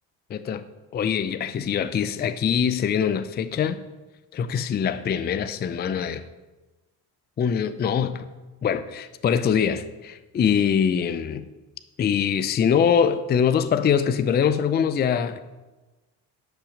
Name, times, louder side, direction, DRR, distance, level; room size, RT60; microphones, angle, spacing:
voice 1, 0.3-0.6 0.9-3.8 4.3-6.2 7.4-8.2 8.6-11.4 12.0-15.4, left 7 dB, 25° left, 0.4 m, -23 dB
10.0 x 5.8 x 6.3 m
cardioid pair, 105°, 38 cm